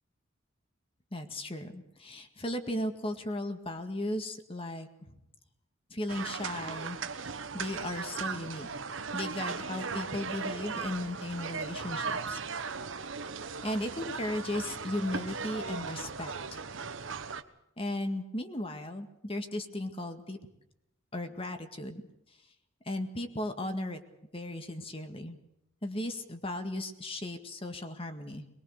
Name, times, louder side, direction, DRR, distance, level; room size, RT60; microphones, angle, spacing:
voice 1, 1.1-5.2 5.9-8.7 9.1-12.4 13.6-16.6 17.8-20.4 21.1-22.0 22.9-24.0 24.3-25.4 25.8-28.4, left 1 dB, 30° left, 6 dB, 1.9 m, -36 dB
sound 1, 6.1-17.4, right 5 dB, 80° right, 1.2 m, -37 dB
22.0 x 21.5 x 6.6 m, 0.82 s
head